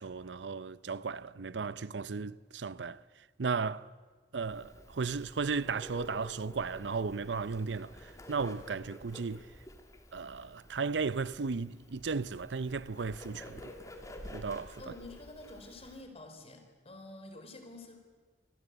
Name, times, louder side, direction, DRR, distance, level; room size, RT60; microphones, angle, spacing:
voice 1, 0.0-3.0 3.4-3.9 4.3-9.5 10.1-13.7 14.3-14.8, right 4 dB, 90° right, 0.6 m, -35 dB
Bird, 4.4-16.0, left 1 dB, 20° left, 2.8 m, -50 dB
voice 2, 14.8-18.0, left 2 dB, 35° left, 4.1 m, -49 dB
27.0 x 20.0 x 8.1 m
head